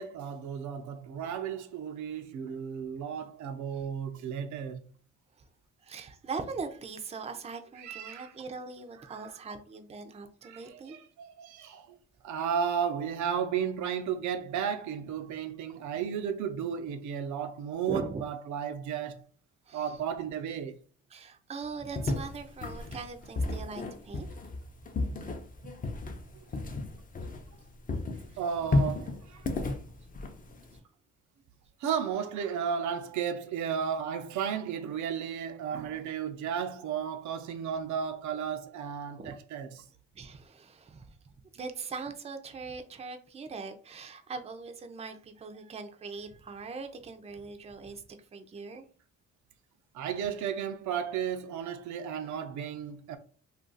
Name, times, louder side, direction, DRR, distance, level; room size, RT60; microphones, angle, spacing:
voice 1, 0.0-4.8 7.8-8.3 9.1-9.3 10.4-11.9 12.2-19.2 19.7-20.8 28.4-29.5 31.8-39.8 49.9-53.2, right 7 dB, 70° right, 0.5 m, -34 dB
voice 2, 5.8-11.0 17.9-18.2 19.7-20.0 21.1-24.3 25.6-25.8 29.8-29.9 39.2-39.3 40.1-41.2 41.5-48.0 48.3-48.9, right 4 dB, 20° right, 0.4 m, -41 dB
sound 1, 21.9-27.6 27.9-30.8, left 2 dB, 30° left, 0.6 m, -33 dB
2.4 x 2.3 x 3.8 m
cardioid pair, 90°, 30 cm